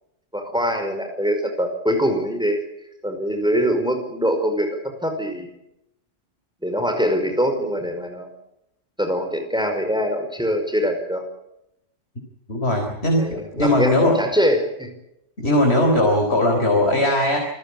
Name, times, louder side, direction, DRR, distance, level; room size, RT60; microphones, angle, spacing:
voice 1, 0.3-2.6 3.0-5.6 6.6-8.3 9.0-11.2 13.2-14.9, equal, 5° right, 6 dB, 5.1 m, -23 dB
voice 2, 12.5-14.2 15.4-17.4, left 1 dB, 55° left, 2 dB, 4.3 m, -19 dB
28.5 x 15.5 x 8.6 m, 0.83 s
omnidirectional pair, 1.3 m